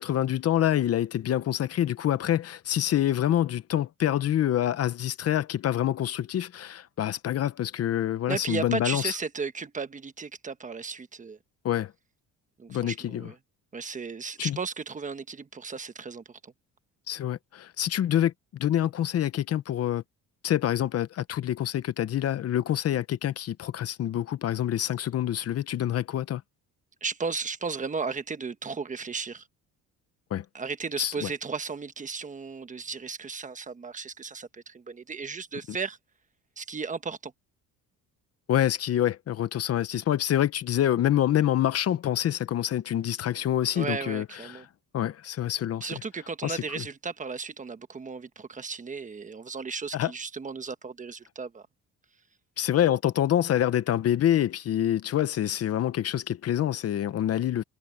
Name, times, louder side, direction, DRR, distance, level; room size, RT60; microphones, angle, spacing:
voice 1, 0.0-9.1 11.6-11.9 12.7-13.3 14.4-14.6 17.1-18.3 18.6-20.0 20.4-26.4 30.3-30.4 31.0-31.3 38.5-44.6 44.9-46.0 46.4-46.8 49.9-50.1 52.6-57.6, left 11 dB, 50° left, 0.8 m, -26 dB
voice 2, 8.3-11.4 12.6-13.4 13.7-16.5 27.0-29.4 30.5-36.0 36.6-37.3 43.7-44.6 45.8-51.7, right 5 dB, 25° right, 1.2 m, -35 dB
cardioid pair, 140°, 32 cm